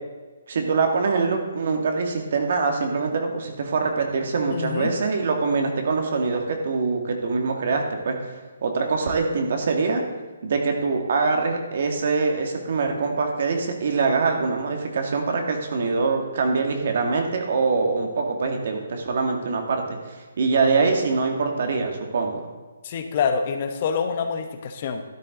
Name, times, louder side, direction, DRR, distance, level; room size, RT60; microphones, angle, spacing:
voice 1, 0.5-8.2 8.6-10.0 10.4-22.5, right 4 dB, 55° right, 3 dB, 2.0 m, -24 dB
voice 2, 4.5-4.9 22.8-25.0, left 6 dB, 40° left, 6 dB, 1.1 m, -26 dB
12.5 x 10.5 x 3.9 m, 1.3 s
hypercardioid pair, 160°, 0 cm